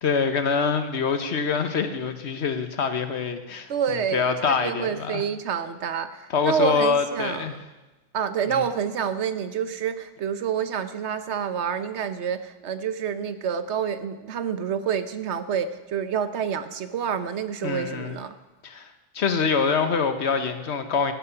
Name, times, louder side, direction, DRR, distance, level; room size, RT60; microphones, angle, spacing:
voice 1, 0.0-5.2 6.3-7.6 8.5-8.6 17.6-18.2 18.6-18.9 19.1-21.1, left 5 dB, 80° left, 9 dB, 1.4 m, -25 dB
voice 2, 3.7-7.5 8.1-18.3, right 7 dB, 90° right, 11 dB, 1.1 m, -28 dB
15.0 x 8.3 x 6.9 m, 1.1 s
omnidirectional pair, 1.1 m